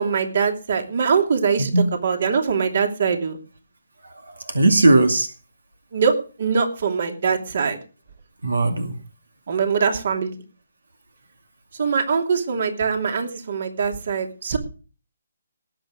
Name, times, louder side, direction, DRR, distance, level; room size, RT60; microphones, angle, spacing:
voice 1, 0.0-1.7 2.0-3.4 5.9-7.8 9.5-10.3 11.8-14.6, right 6 dB, 55° right, 4 dB, 2.8 m, -22 dB
voice 2, 4.0-5.3 8.4-9.0, right 2 dB, 90° right, 6 dB, 2.3 m, -18 dB
19.0 x 8.2 x 5.0 m, 0.36 s
figure-of-eight pair, 150°, 0 cm